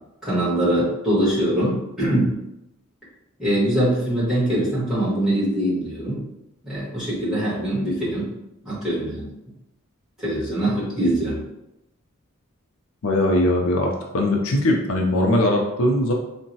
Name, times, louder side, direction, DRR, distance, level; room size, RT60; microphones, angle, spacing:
voice 1, 0.2-2.3 3.4-6.2 6.6-8.3 8.6-9.3 10.2-11.4, right 1 dB, ahead, -10 dB, 1.3 m, -23 dB
voice 2, 13.0-16.1, left 1 dB, 70° left, 0 dB, 0.5 m, -20 dB
3.7 x 2.1 x 2.7 m, 0.89 s
head